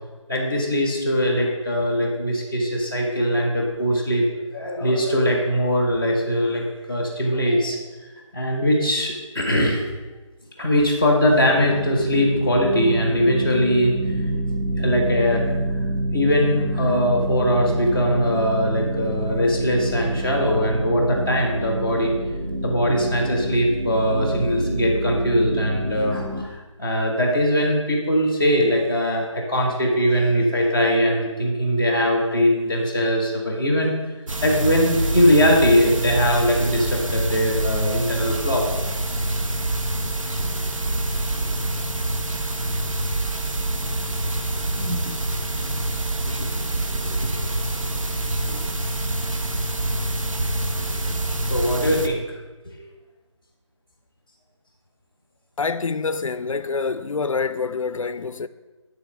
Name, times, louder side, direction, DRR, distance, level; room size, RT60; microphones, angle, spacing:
voice 1, 0.3-4.2 4.5-6.6 6.9-7.8 8.3-9.8 10.6-14.0 14.8-15.4 16.1-22.1 22.6-33.9 34.4-38.6 41.4-41.5 45.6-45.7 46.9-47.3 51.5-52.2 52.6-52.7, equal, 5° right, 0.5 m, -21 dB
sound 1, 11.2-26.4, right 1 dB, 30° right, 0.8 m, -27 dB
sound 2, 34.3-52.1, right 2 dB, 80° right, 1.0 m, -26 dB
voice 2, 55.6-58.5, left 4 dB, 80° left, 0.5 m, -26 dB
9.2 x 4.0 x 6.3 m
figure-of-eight pair, 165°, 17 cm